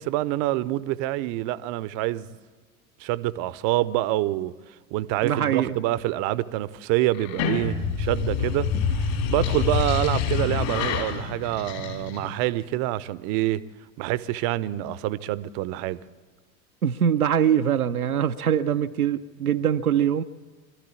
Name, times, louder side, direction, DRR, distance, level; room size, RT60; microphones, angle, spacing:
voice 1, 0.0-2.3 3.0-4.5 4.9-13.6 14.0-16.0, right 15 dB, 45° right, 0.8 m, -26 dB
voice 2, 5.2-5.8 16.8-20.2, right 9 dB, 85° right, 0.8 m, -23 dB
sound 1, 7.1-12.5, left 6 dB, 55° left, 3.5 m, -27 dB
25.0 x 13.5 x 8.5 m
figure-of-eight pair, 75°, 43 cm